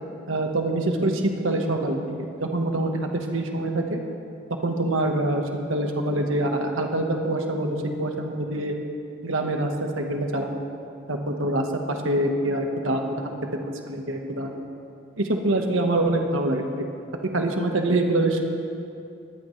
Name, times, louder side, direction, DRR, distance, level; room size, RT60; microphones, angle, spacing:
voice 1, 0.3-4.0 4.6-8.8 9.2-10.6 11.1-14.7 15.2-16.8 17.3-18.4, right 1 dB, 80° right, 3 dB, 1.4 m, -25 dB
20.0 x 14.5 x 3.3 m, 2.5 s
head